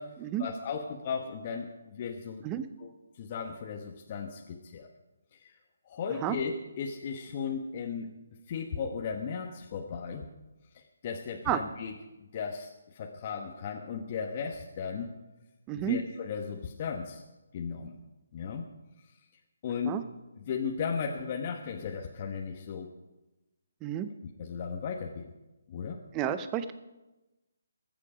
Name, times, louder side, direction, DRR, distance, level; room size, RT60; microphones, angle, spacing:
voice 1, 0.4-2.5 2.8-2.9 3.2-4.9 5.3-5.6 5.8-8.1 8.5-10.3 10.7-15.1 15.7-17.2 17.5-18.0 18.3-18.6 19.6-20.0 20.4-22.9 24.4-25.3 25.7-26.0, left 6 dB, 35° left, 2 dB, 1.2 m, -36 dB
voice 2, 15.7-16.0 19.8-20.0 23.8-24.1 26.1-26.7, right 10 dB, 20° right, 11 dB, 0.7 m, -30 dB
21.5 x 7.6 x 5.0 m, 1.1 s
figure-of-eight pair, 155°, 0 cm